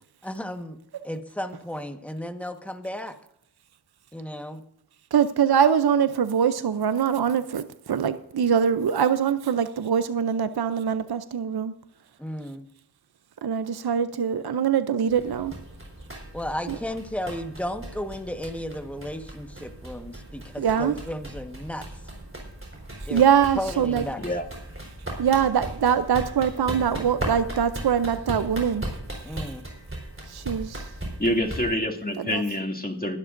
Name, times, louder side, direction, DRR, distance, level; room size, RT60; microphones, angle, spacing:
voice 1, 0.2-0.8 1.0-3.1 4.1-4.6 12.2-12.7 16.3-21.8 23.0-23.2 23.6-24.2 29.2-29.6, left 1 dB, 5° left, 6 dB, 1.3 m, -34 dB
voice 2, 5.1-11.7 13.4-15.5 16.7-16.8 20.6-21.0 22.9-24.0 25.2-28.9 29.2-29.3 30.3-30.9 32.2-32.4, right 8 dB, 70° right, 12 dB, 0.6 m, -23 dB
sound 1, 15.1-31.7, right 1 dB, 30° right, 4.2 m, -37 dB
voice 3, 31.2-33.2, left 1 dB, 20° left, 1 dB, 2.3 m, -26 dB
21.5 x 12.0 x 2.6 m, 0.74 s
wide cardioid pair, 45°, 39 cm